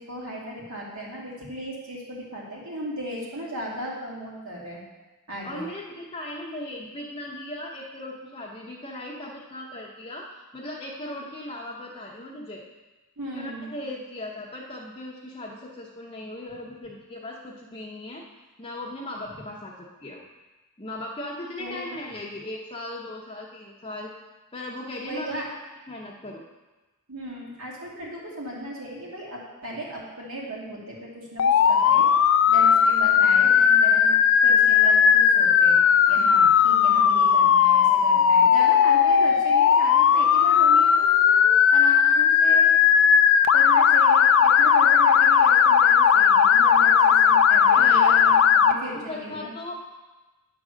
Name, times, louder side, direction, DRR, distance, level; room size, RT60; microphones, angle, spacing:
voice 1, 0.0-4.8 5.3-5.7 13.2-13.7 21.6-21.8 25.0-25.5 27.1-32.1 32.5-34.1 34.4-35.8 36.1-42.7 43.5-49.5, right 1 dB, 70° right, -4 dB, 2.2 m, -36 dB
voice 2, 5.4-12.6 13.3-18.2 18.6-19.7 20.0-20.2 20.8-24.1 24.5-25.4 25.9-26.4 47.8-48.0 49.1-49.8, left 1 dB, 25° left, -4 dB, 0.8 m, -37 dB
Motor vehicle (road) / Siren, 31.4-48.7, left 7 dB, 60° left, 0.4 m, -17 dB
9.3 x 3.9 x 6.2 m, 1.1 s
head